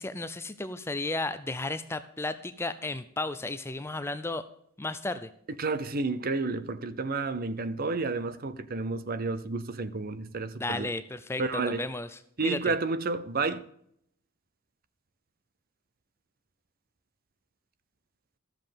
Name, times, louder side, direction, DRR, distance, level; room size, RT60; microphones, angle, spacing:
voice 1, 0.0-4.4 4.8-5.3 10.6-12.6, left 2 dB, 10° left, 0.4 m, -34 dB
voice 2, 5.6-10.9 11.4-11.9 12.4-13.6, right 3 dB, 45° right, 0.6 m, -31 dB
13.0 x 7.6 x 5.2 m
head